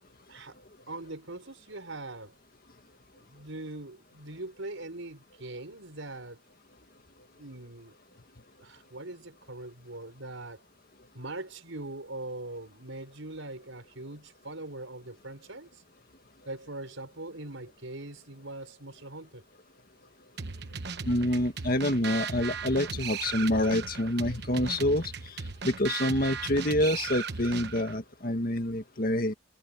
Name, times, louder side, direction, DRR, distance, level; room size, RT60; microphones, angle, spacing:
voice 1, 0.9-2.4 3.2-6.4 7.4-7.9 8.6-10.6 11.1-15.8 16.5-19.4, right 2 dB, 75° right, 5.0 m, -41 dB
sound 1, 20.4-28.0, right 5 dB, 55° right, 1.1 m, -37 dB
voice 2, 21.1-25.0 25.6-29.3, left 1 dB, 45° left, 1.9 m, -27 dB
head